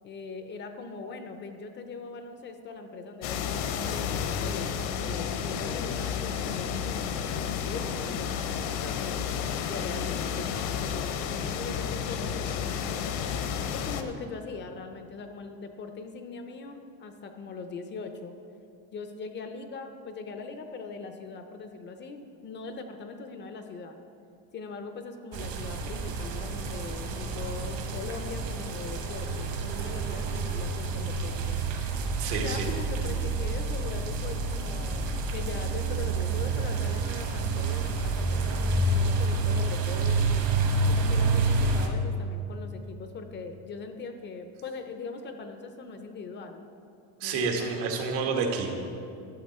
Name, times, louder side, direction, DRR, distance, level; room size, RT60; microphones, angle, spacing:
voice 1, 0.0-9.3 9.7-13.1 13.7-18.3 18.9-24.0 24.5-31.6 32.3-40.5 40.9-46.7 47.2-47.8, left 4 dB, 30° left, 7 dB, 0.4 m, -41 dB
sound 1, 3.2-14.0, left 7 dB, 65° left, 0.8 m, -31 dB
sound 2, 25.3-41.9, right 3 dB, 55° right, 1.1 m, -28 dB
voice 2, 32.2-32.7 47.2-48.7, right 5 dB, 85° right, 2 dB, 1.6 m, -29 dB
12.5 x 7.3 x 4.2 m, 2.6 s
cardioid pair, 165°, 42 cm